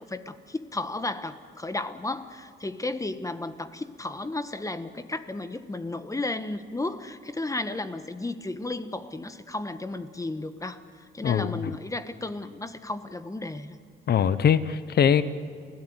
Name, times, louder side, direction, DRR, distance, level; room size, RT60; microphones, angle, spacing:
voice 1, 0.0-10.8 11.1-13.7, left 2 dB, 15° left, 10 dB, 1.5 m, -33 dB
voice 2, 11.2-11.7 14.1-15.2, left 8 dB, 55° left, 14 dB, 1.0 m, -22 dB
30.0 x 17.0 x 9.9 m, 2.2 s
cardioid pair, 90°, 20 cm